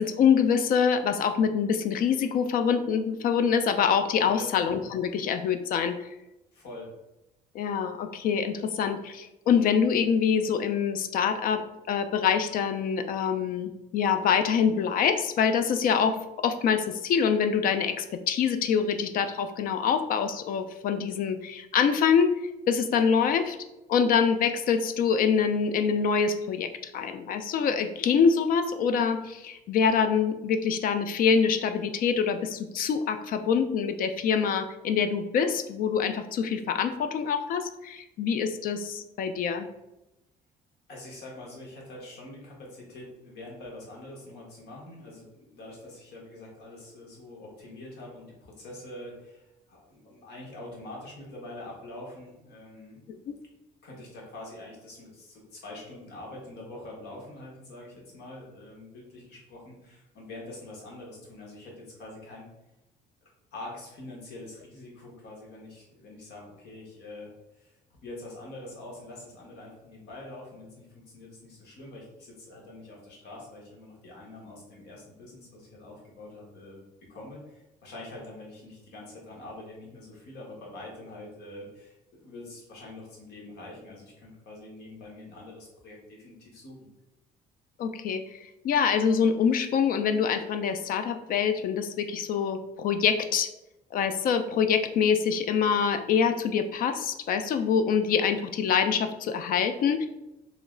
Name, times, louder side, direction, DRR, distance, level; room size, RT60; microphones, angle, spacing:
voice 1, 0.0-6.0 7.5-11.6 11.9-22.3 22.7-23.6 23.9-39.7 53.3-53.4 87.8-93.5 93.9-100.1, left 6 dB, 55° left, 9 dB, 0.4 m, -25 dB
voice 2, 6.5-6.9 40.9-53.0 53.8-62.5 63.2-76.8 77.1-86.8, left 2 dB, 80° left, -2 dB, 1.4 m, -45 dB
3.0 x 3.0 x 3.7 m, 0.94 s
cardioid pair, 110°, 17 cm